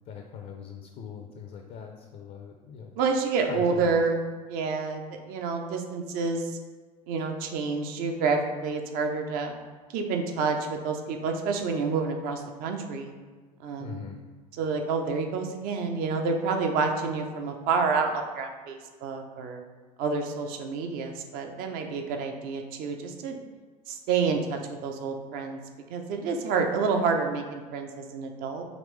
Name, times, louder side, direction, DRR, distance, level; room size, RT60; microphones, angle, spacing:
voice 1, 0.1-2.9 3.5-4.0 13.8-14.2, left 6 dB, 45° left, 3 dB, 0.5 m, -41 dB
voice 2, 3.0-4.2 4.5-6.6 7.1-9.5 9.9-13.1 13.6-14.0 14.6-19.6 20.0-23.4 23.9-25.6 25.9-28.6, right 4 dB, 50° right, 4 dB, 0.6 m, -28 dB
5.2 x 3.1 x 3.1 m, 1.4 s
figure-of-eight pair, 65°, 19 cm